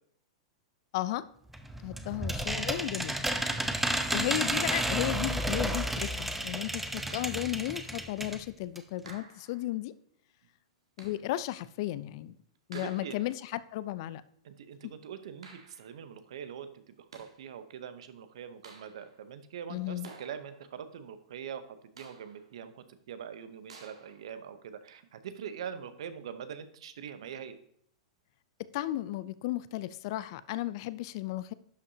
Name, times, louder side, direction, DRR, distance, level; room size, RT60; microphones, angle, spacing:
voice 1, 0.9-1.3 1.8-3.3 4.1-9.9 11.0-12.4 12.7-14.2 19.7-20.1 28.7-31.5, left 15 dB, 55° left, 17 dB, 0.4 m, -34 dB
sound 1, 1.5-8.4 8.7-8.8 9.1-9.2, right 1 dB, 5° right, 0.7 m, -32 dB
sound 2, 7.1-7.7 9.1-9.8 11.0-11.4 12.7-13.5 15.4-16.0 16.9-17.5 18.6-19.2 20.0-20.8 22.0-22.5 23.7-24.3, right 3 dB, 90° right, 1.4 m, -53 dB
voice 2, 12.7-13.2 14.4-27.6, right 8 dB, 70° right, 12 dB, 0.8 m, -43 dB
11.0 x 5.5 x 2.7 m, 0.66 s
hypercardioid pair, 110°, 3 cm